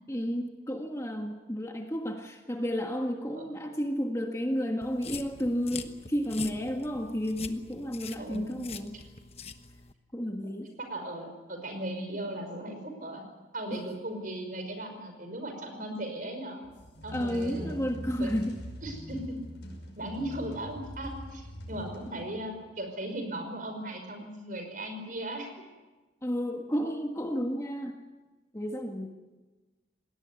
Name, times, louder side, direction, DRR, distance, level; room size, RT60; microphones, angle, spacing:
voice 1, 0.1-8.9 10.1-10.7 13.7-13.8 17.1-18.6 26.2-28.0 28.5-29.1, equal, 15° left, 3 dB, 1.6 m, -32 dB
sound 1, 4.8-9.9, left 5 dB, 35° left, 1.1 m, -44 dB
voice 2, 8.2-8.6 10.8-13.2 13.5-16.6 17.0-18.3 18.8-19.4 20.0-25.5, right 1 dB, 45° right, 5 dB, 5.3 m, -37 dB
sound 2, 16.6-22.6, equal, 65° left, 5.5 m, -43 dB
20.5 x 18.5 x 9.6 m, 1.2 s
head